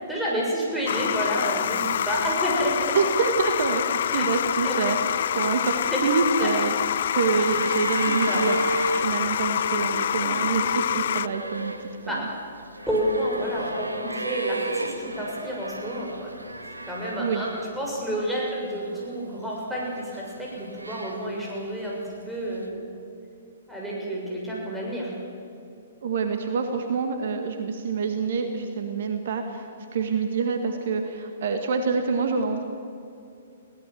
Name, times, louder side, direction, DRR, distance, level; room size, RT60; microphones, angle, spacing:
voice 1, 0.1-3.0 4.1-4.3 4.6-4.8 5.9-6.0 8.0-8.4 10.2-10.4 12.1-12.3 12.9-16.3 16.9-22.7 23.7-25.1, equal, 5° right, -4 dB, 6.9 m, -30 dB
sound 1, 0.9-11.3, left 10 dB, 55° left, 0.4 m, -26 dB
voice 2, 2.9-5.0 5.4-6.7 7.1-8.6 9.0-11.7 12.0-12.3 17.2-17.4 26.0-32.6, right 5 dB, 60° right, 6 dB, 1.8 m, -26 dB
sound 2, 6.2-17.9 18.2-19.1 19.9-21.6 22.6-22.7, right 1 dB, 90° right, 1.8 m, -34 dB
22.0 x 17.5 x 7.7 m, 2.6 s
figure-of-eight pair, 120°, 0 cm